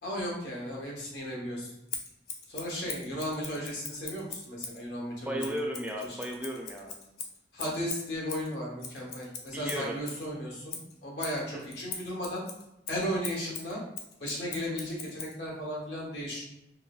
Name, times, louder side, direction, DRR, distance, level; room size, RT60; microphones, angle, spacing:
voice 1, 0.0-1.7 2.5-5.6 6.0-6.2 7.5-12.4 12.9-13.8 14.2-16.4, equal, 75° left, -3 dB, 1.2 m, -35 dB
Scissors, 1.9-4.8 5.4-10.3 10.7-15.4, left 6 dB, 55° left, 0.5 m, -41 dB
voice 2, 5.3-6.9 9.5-10.0 11.5-11.6, right 1 dB, 10° right, 0 dB, 0.3 m, -35 dB
4.7 x 2.2 x 2.3 m, 0.89 s
head